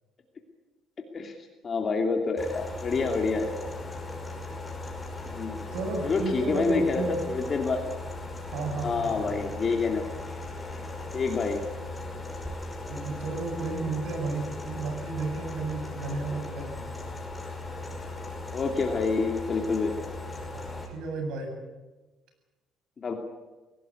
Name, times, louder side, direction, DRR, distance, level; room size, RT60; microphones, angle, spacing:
voice 1, 1.0-1.4 1.6-3.6 5.3-5.6 6.0-7.8 8.7-10.2 11.1-11.7 18.5-20.1 23.0-23.1, left 4 dB, 35° left, 3 dB, 2.7 m, -28 dB
sound 1, 2.4-20.9, left 2 dB, 15° left, 5.4 m, -38 dB
voice 2, 5.7-7.2 8.4-9.4 12.9-16.8 20.5-21.6, right 3 dB, 75° right, 5 dB, 7.7 m, -33 dB
23.5 x 17.5 x 9.7 m, 1.2 s
cardioid pair, 135°, 0 cm